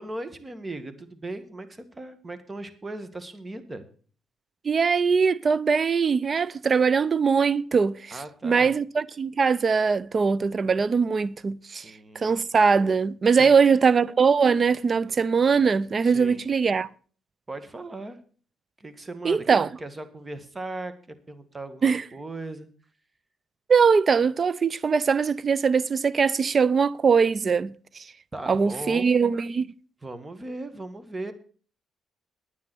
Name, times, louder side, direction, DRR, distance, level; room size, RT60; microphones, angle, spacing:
voice 1, 0.0-3.9 8.1-8.7 11.6-12.3 13.3-13.5 16.0-16.4 17.5-18.2 18.8-19.4 19.8-22.7 28.3-29.2 30.0-31.3, right 2 dB, 25° right, 1.7 m, -38 dB
voice 2, 4.6-8.2 8.4-11.8 12.1-16.9 19.2-19.7 21.8-22.0 23.7-27.7 28.5-29.7, right 5 dB, 40° right, 0.6 m, -21 dB
9.6 x 9.6 x 6.1 m
cardioid pair, 90°, 0 cm